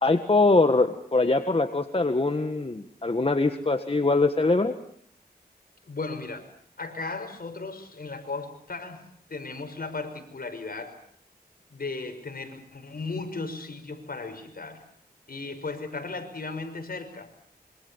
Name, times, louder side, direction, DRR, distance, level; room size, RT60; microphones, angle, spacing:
voice 1, 0.0-4.7, left 3 dB, 35° left, 7 dB, 1.7 m, -23 dB
voice 2, 5.8-6.4 6.8-11.0 11.7-14.8 15.3-17.3, left 3 dB, 60° left, 6 dB, 5.9 m, -36 dB
26.5 x 25.0 x 7.1 m, 0.64 s
cardioid pair, 55°, 17 cm